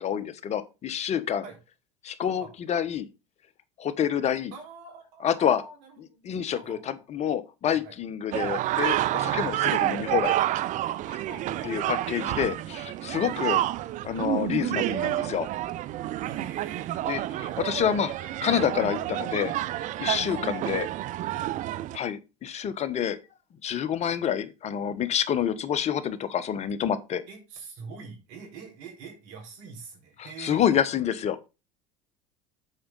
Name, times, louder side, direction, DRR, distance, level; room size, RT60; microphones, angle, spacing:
voice 1, 0.0-1.4 2.0-3.1 3.8-4.5 5.2-5.6 6.0-10.3 11.1-11.2 11.6-13.6 14.0-15.5 17.1-20.9 21.9-23.2 23.6-27.2 30.4-31.5, left 9 dB, 40° left, 1.1 m, -28 dB
voice 2, 4.5-6.9 7.6-7.9 11.2-12.0 16.2-17.6 20.2-20.4 27.3-30.8, right 4 dB, 70° right, 4.4 m, -45 dB
sound 1, 8.3-22.0, right 14 dB, 50° right, 0.5 m, -29 dB
7.8 x 5.0 x 5.5 m
hypercardioid pair, 80°, 16 cm